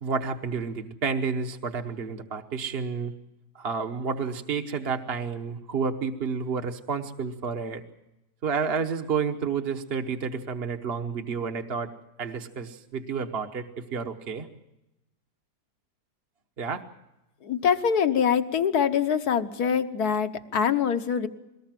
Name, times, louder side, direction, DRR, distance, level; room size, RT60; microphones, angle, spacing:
voice 1, 0.0-3.1 3.5-7.8 8.4-11.9 12.2-14.5 16.6-16.8, right 5 dB, 40° right, 4 dB, 1.2 m, -30 dB
voice 2, 17.4-21.3, left 7 dB, 70° left, 9 dB, 1.6 m, -24 dB
22.5 x 19.0 x 7.5 m, 0.96 s
omnidirectional pair, 1.7 m